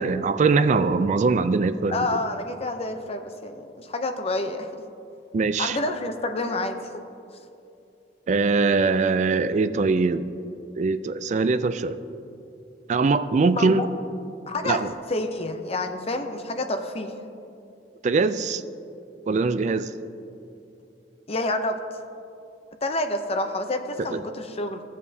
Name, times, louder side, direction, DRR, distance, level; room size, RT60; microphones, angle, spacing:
voice 1, 0.0-2.0 5.3-5.8 8.3-10.3 10.8-12.0 12.9-13.8 14.6-14.9 18.0-18.6 19.3-19.9 24.1-24.2, right 4 dB, 40° right, 12 dB, 0.3 m, -22 dB
voice 2, 1.9-4.8 5.6-6.8 13.5-13.9 14.5-17.1 21.3-21.8 22.8-24.8, left 2 dB, 35° left, 6 dB, 0.6 m, -28 dB
16.0 x 7.3 x 2.8 m, 2.6 s
head